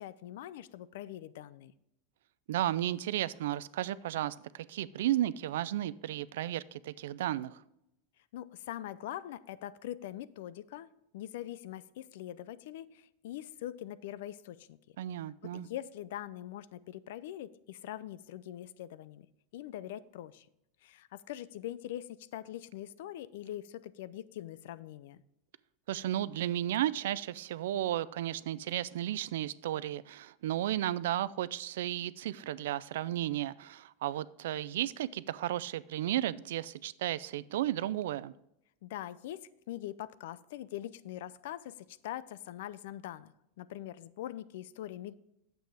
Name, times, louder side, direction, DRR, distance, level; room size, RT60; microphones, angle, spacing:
voice 1, 0.0-1.7 8.3-14.8 15.4-19.3 19.5-20.5 20.8-25.2 38.8-45.2, left 12 dB, 65° left, 17 dB, 0.4 m, -43 dB
voice 2, 2.5-7.6 15.0-15.7 25.9-38.3, right 13 dB, 75° right, 19 dB, 0.4 m, -34 dB
8.9 x 7.7 x 3.4 m, 0.82 s
supercardioid pair, 175°, 0 cm